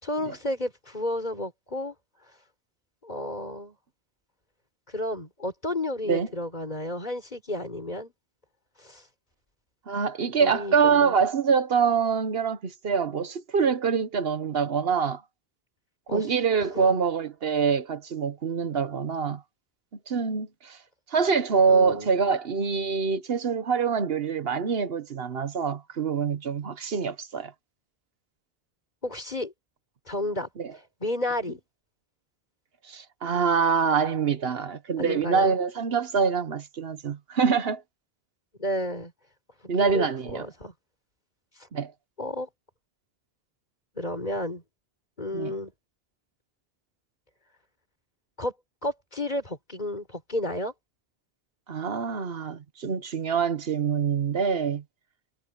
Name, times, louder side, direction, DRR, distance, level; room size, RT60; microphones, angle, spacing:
voice 1, 0.0-1.9 3.0-3.8 4.9-8.1 8.8-9.0 10.4-11.2 16.1-16.3 16.7-17.0 21.7-22.3 29.0-29.5 30.1-30.5 31.0-31.6 35.0-35.6 38.6-39.1 39.6-40.7 42.2-42.5 43.9-44.6 45.2-45.7 48.4-48.5 48.8-50.7, left 1 dB, 45° left, 4.3 m, -32 dB
voice 2, 9.9-15.2 16.1-19.4 20.1-20.8 21.1-27.5 30.6-30.7 32.9-37.8 39.7-40.4 41.7-41.9 45.3-45.5 51.7-54.8, right 6 dB, 70° right, 1.2 m, -25 dB
omnidirectional pair, 1.1 m